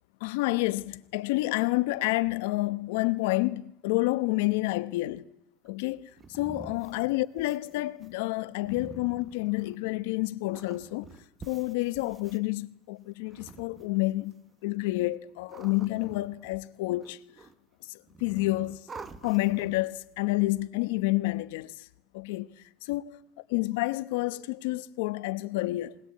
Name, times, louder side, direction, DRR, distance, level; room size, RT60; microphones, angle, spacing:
voice 1, 0.2-5.3 5.6-11.1 11.5-14.3 14.6-17.2 17.9-18.9 19.2-21.9 22.1-23.2 23.5-26.0, left 20 dB, 80° left, 1.1 m, -29 dB
sound 1, 5.7-10.0 10.5-12.4 13.2-14.3 15.1-16.7 17.0-17.7 18.0-20.0, right 4 dB, 15° right, 1.1 m, -48 dB
21.5 x 20.5 x 8.6 m
cardioid pair, 160°, 0 cm